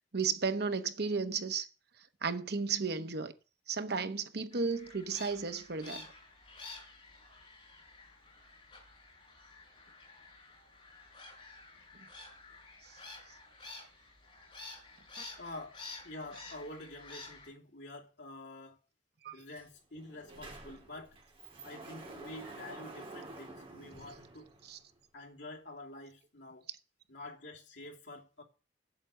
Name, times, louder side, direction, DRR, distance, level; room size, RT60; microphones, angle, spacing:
voice 1, 0.1-1.7 2.2-3.3 3.7-6.1 19.2-19.4 24.7-24.8, right 5 dB, 60° right, 1.0 m, -33 dB
sound 1, 4.5-17.5, left 3 dB, 30° left, 6.8 m, -51 dB
voice 2, 15.4-18.8 19.3-21.2 21.6-24.5 25.1-26.7 27.1-28.4, left 2 dB, 75° left, 2.7 m, -48 dB
Sliding door, 19.6-19.7 20.0-25.0, right 2 dB, 30° right, 3.0 m, -49 dB
8.2 x 7.6 x 8.2 m
head